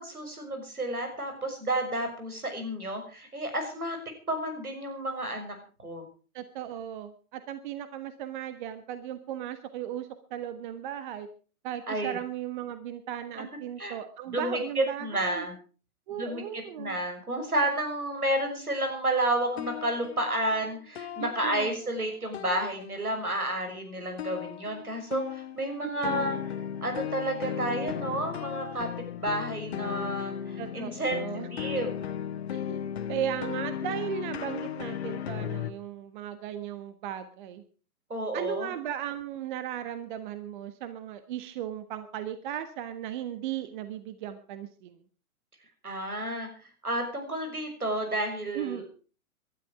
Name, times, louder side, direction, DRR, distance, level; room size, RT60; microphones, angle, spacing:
voice 1, 0.0-4.0 4.3-5.6 5.8-6.0 11.9-12.2 13.4-13.5 13.8-14.0 14.3-15.5 16.1-26.4 26.8-31.2 31.5-32.1 38.1-38.7 45.8-46.5 46.8-48.9, right 1 dB, 85° right, 4 dB, 6.3 m, -31 dB
voice 2, 6.3-11.3 11.6-15.5 16.1-17.0 21.2-21.8 25.8-26.4 30.6-31.5 32.5-32.8 33.1-37.6 38.3-45.0 48.5-48.9, right 10 dB, 35° right, 10 dB, 1.4 m, -36 dB
sound 1, 19.4-22.0 22.3-23.4 24.2-35.7, left 9 dB, 45° left, 1.3 m, -36 dB
20.0 x 12.5 x 4.9 m, 0.38 s
figure-of-eight pair, 125°, 43 cm